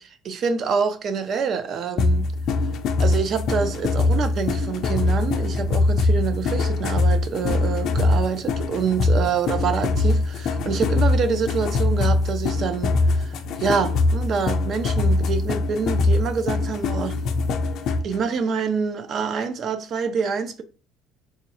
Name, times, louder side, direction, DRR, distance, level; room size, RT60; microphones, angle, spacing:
voice 1, 0.0-2.3 3.0-17.2 18.0-20.6, right 6 dB, 40° right, 0.5 m, -26 dB
sound 1, 2.0-18.2, left 3 dB, 50° left, 0.4 m, -22 dB
3.5 x 3.0 x 2.9 m
cardioid pair, 145°, 0 cm